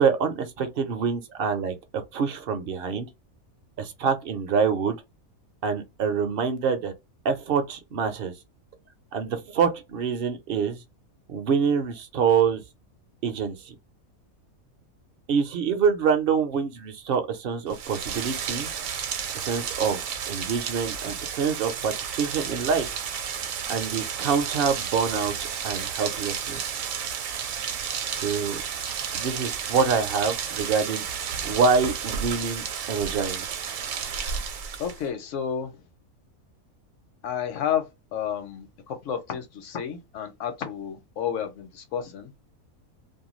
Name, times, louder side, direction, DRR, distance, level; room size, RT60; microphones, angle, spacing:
voice 1, 0.0-3.1 3.8-4.9 5.6-6.9 7.2-8.3 9.1-10.8 11.3-12.6 13.2-13.8 15.3-18.7 19.4-22.9 23.7-26.8 28.2-28.6 29.1-31.0 31.4-33.5, right 6 dB, 60° right, 0.6 m, -26 dB
Rain, 17.7-35.1, right 7 dB, 75° right, 1.0 m, -32 dB
voice 2, 34.8-35.8 37.2-37.8 38.1-42.3, left 8 dB, 65° left, 1.0 m, -31 dB
2.5 x 2.2 x 3.0 m
omnidirectional pair, 1.5 m